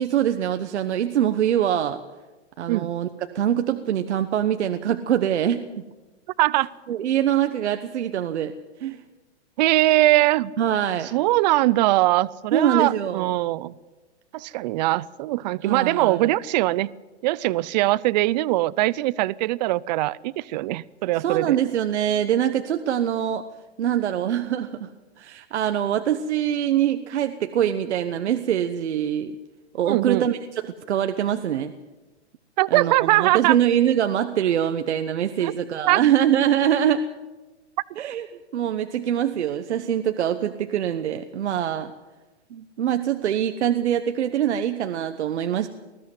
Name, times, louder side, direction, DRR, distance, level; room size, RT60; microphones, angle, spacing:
voice 1, 0.0-2.0 2.6-3.1 3.3-5.8 6.9-8.5 8.8-9.0 10.6-11.1 12.5-13.3 15.6-16.3 21.2-23.4 23.8-24.9 25.2-29.4 29.7-31.7 32.7-37.0 38.0-38.3 38.5-41.9 42.5-45.7, right 10 dB, 75° right, 8 dB, 1.2 m, -24 dB
voice 2, 6.4-6.7 9.6-10.5 11.1-13.7 14.3-16.9 17.2-21.6 29.9-30.3 32.6-33.6 35.4-35.5 35.9-36.0, right 17 dB, 40° right, 21 dB, 0.6 m, -21 dB
20.0 x 14.5 x 9.5 m, 1.2 s
hypercardioid pair, 140°, 34 cm